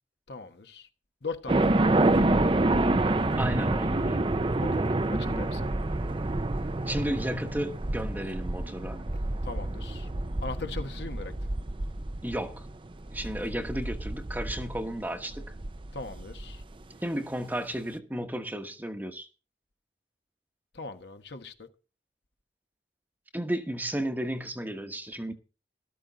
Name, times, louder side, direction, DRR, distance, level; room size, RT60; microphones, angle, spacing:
voice 1, 0.3-0.9 1.2-2.6 4.6-5.7 9.4-10.1 10.4-11.3 15.9-16.6 20.7-21.7, left 3 dB, 70° left, 1.4 m, -40 dB
sound 1, 1.5-16.6, right 2 dB, 30° right, 0.6 m, -28 dB
voice 2, 3.4-4.2 6.8-9.1 12.2-12.7 13.1-15.5 17.0-19.3 23.3-25.3, right 1 dB, 10° right, 1.1 m, -33 dB
13.5 x 13.0 x 4.0 m
head